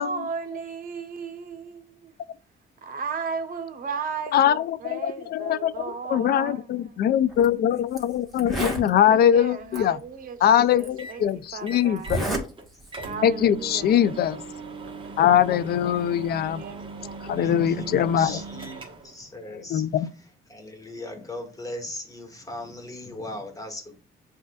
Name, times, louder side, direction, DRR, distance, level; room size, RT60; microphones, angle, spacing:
voice 1, 0.0-2.1 2.8-6.6 9.0-11.2 11.5-12.2 13.0-14.2 16.5-17.2, right 5 dB, 50° right, 1.0 m, -35 dB
voice 2, 4.3-10.0 10.4-12.3 13.2-14.4 15.2-16.6 17.2-18.4 19.7-20.1, left 9 dB, 55° left, 0.4 m, -22 dB
Zipper (clothing), 7.3-7.5 8.0-8.1 8.3-8.9 9.7-9.8 10.8-10.9 12.0-12.5 12.8-13.1, right 1 dB, ahead, 1.7 m, -29 dB
sound 1, 11.0-11.2 11.7-12.3 12.6-12.7 12.9-19.2, right 3 dB, 25° right, 1.2 m, -39 dB
voice 3, 17.3-20.1 20.5-24.0, left 1 dB, 15° left, 1.4 m, -38 dB
7.3 x 2.5 x 2.3 m
cardioid pair, 105°, 19 cm